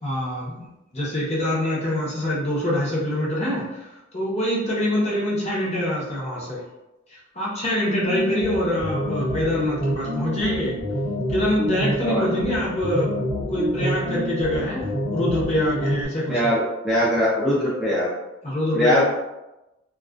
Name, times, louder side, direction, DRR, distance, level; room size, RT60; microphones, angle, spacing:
voice 1, 0.0-0.7 0.9-3.9 4.1-6.6 7.3-10.8 11.3-13.1 13.5-16.5 18.4-19.0, left 1 dB, 35° left, -6 dB, 0.7 m, -25 dB
sound 1, 8.1-16.1, equal, 75° left, 1.1 m, -27 dB
voice 2, 16.3-18.1 18.7-19.0, left 1 dB, ahead, -9 dB, 0.4 m, -21 dB
2.3 x 2.2 x 2.3 m, 0.98 s
head